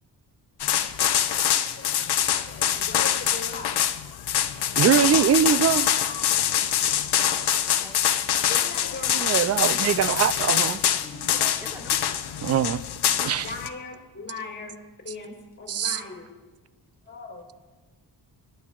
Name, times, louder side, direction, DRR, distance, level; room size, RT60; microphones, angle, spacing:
sound 1, 0.6-13.7, left 10 dB, 70° left, 0.7 m, -24 dB
voice 1, 0.7-3.8 4.7-5.4 5.8-6.3 8.3-9.3 11.0-11.6 13.4-14.7 15.0-15.3 15.6-16.3 17.1-17.5, left 3 dB, 30° left, 0 dB, 3.7 m, -40 dB
voice 2, 4.8-5.9 9.1-10.8 12.4-12.8 13.2-13.5 15.7-16.0, right 8 dB, 40° right, 16 dB, 0.4 m, -22 dB
voice 3, 7.6-8.4 11.6-12.0, left 1 dB, 5° right, -1 dB, 2.0 m, -45 dB
25.5 x 10.0 x 2.4 m, 1.3 s
wide cardioid pair, 125°, 41 cm